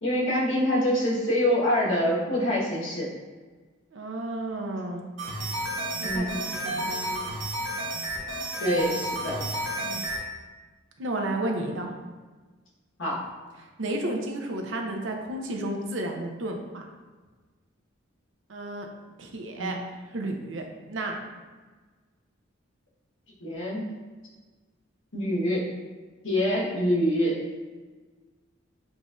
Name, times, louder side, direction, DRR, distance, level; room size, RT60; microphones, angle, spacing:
voice 1, 0.0-3.1 6.0-6.4 8.6-9.4 13.0-13.2 19.6-19.8 23.4-23.8 25.1-25.6 26.2-27.3, equal, 75° left, -6 dB, 1.3 m, -25 dB
voice 2, 3.9-5.0 6.0-7.3 9.8-10.0 11.0-11.9 13.8-16.9 18.5-18.9 19.2-19.8 20.1-21.3, right 1 dB, 70° right, 2 dB, 0.6 m, -32 dB
sound 1, 5.2-10.2, right 1 dB, 90° right, 1.0 m, -31 dB
6.9 x 2.5 x 2.4 m, 1.4 s
head